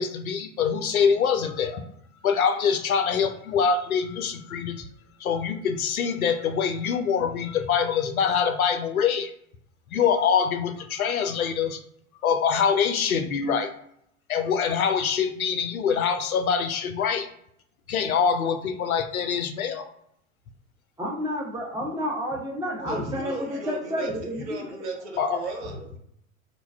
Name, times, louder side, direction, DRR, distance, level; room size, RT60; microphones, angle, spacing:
voice 1, 0.0-1.8 2.2-4.9 5.2-9.3 9.9-11.8 12.2-13.7 14.3-17.3 17.9-19.8 25.2-25.4, left 6 dB, 85° left, 7 dB, 0.5 m, -24 dB
voice 2, 21.0-24.4, equal, 10° right, -2 dB, 0.7 m, -30 dB
voice 3, 22.7-26.0, right 2 dB, 55° right, 1 dB, 1.1 m, -35 dB
2.5 x 2.2 x 3.3 m, 0.71 s
figure-of-eight pair, 90°, 41 cm